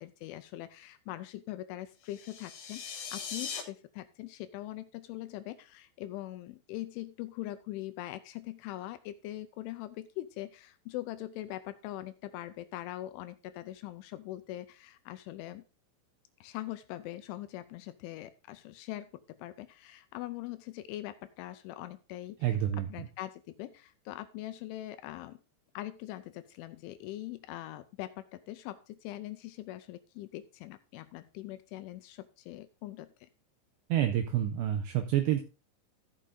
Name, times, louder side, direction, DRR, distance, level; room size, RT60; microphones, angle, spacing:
voice 1, 0.0-15.6 16.4-25.4 25.7-33.3, left 15 dB, 80° left, 11 dB, 2.9 m, -42 dB
sound 1, 2.0-3.6, left 6 dB, 65° left, 2.1 m, -40 dB
voice 2, 22.4-23.1 33.9-35.4, right 11 dB, 80° right, 7 dB, 2.5 m, -28 dB
14.5 x 6.6 x 3.8 m, 0.32 s
omnidirectional pair, 5.9 m